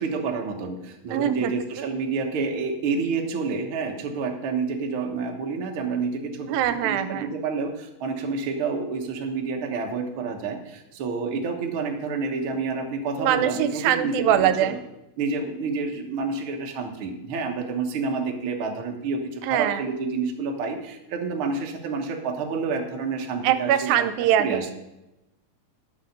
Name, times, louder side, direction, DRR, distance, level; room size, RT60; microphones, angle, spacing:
voice 1, 0.0-14.7 15.2-24.1 24.4-24.7, right 4 dB, 55° right, 2 dB, 1.5 m, -29 dB
voice 2, 1.1-1.5 1.8-1.9 6.4-7.3 13.2-14.8 19.4-19.8 23.4-24.7, right 10 dB, 85° right, 11 dB, 2.4 m, -23 dB
11.5 x 5.7 x 6.6 m, 0.92 s
omnidirectional pair, 4.1 m